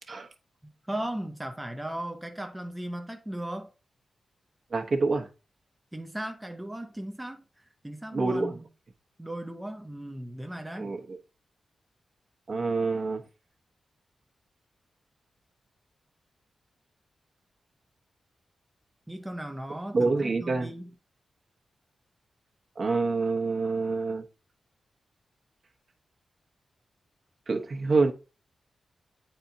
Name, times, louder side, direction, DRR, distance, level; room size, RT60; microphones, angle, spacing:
voice 1, 0.6-3.7 5.9-8.6 9.2-10.9 19.1-20.9, right 1 dB, 10° right, 0.7 m, -37 dB
voice 2, 4.7-5.3 8.1-8.5 10.8-11.2 12.5-13.2 19.9-20.7 22.8-24.2 27.5-28.1, right 3 dB, 55° right, 1.1 m, -26 dB
8.5 x 4.4 x 2.7 m
cardioid pair, 65°, 0 cm